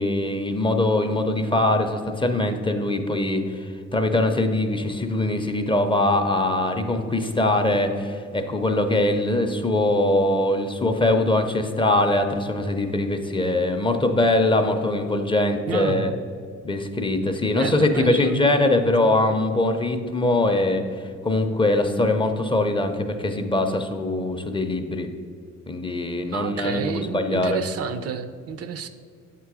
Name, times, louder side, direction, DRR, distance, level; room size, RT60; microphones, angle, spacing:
voice 1, 0.0-16.1 16.6-25.1 25.7-27.6, left 2 dB, 15° left, 6 dB, 0.5 m, -22 dB
voice 2, 15.7-16.2 17.5-18.4 26.3-28.9, right 6 dB, 55° right, 10 dB, 0.4 m, -30 dB
7.9 x 3.7 x 4.7 m, 2.2 s
cardioid pair, 90°, 30 cm